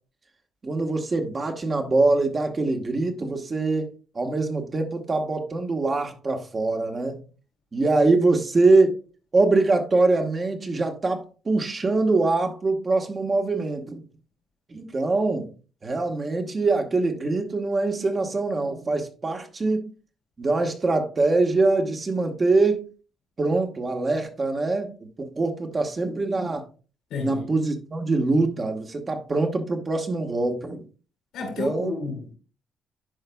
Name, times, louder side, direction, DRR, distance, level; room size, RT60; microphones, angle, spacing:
voice 1, 0.6-7.2 7.7-9.0 9.3-14.0 14.7-15.5 15.8-19.9 20.4-22.8 23.4-26.6 27.2-30.8 31.6-31.9, right 3 dB, 35° right, 1.3 m, -23 dB
voice 2, 27.1-27.5 31.3-32.4, left 4 dB, 85° left, 2.9 m, -31 dB
11.5 x 4.9 x 2.3 m
cardioid pair, 90°, 0 cm